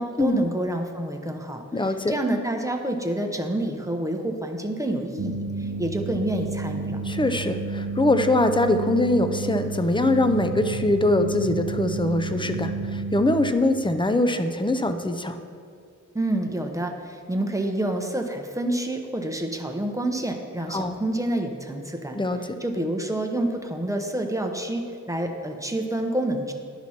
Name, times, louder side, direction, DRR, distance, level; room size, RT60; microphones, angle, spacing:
voice 1, 0.0-1.6 2.1-7.0 16.1-22.2 22.6-26.5, right 1 dB, 10° right, 4 dB, 0.8 m, -28 dB
voice 2, 1.7-2.1 7.0-15.4 20.7-21.0 22.1-22.6, left 2 dB, 15° left, 8 dB, 0.5 m, -23 dB
sound 1, 5.2-13.5, right 4 dB, 70° right, 0.7 m, -31 dB
10.5 x 6.0 x 4.3 m, 2.2 s
wide cardioid pair, 65°, 32 cm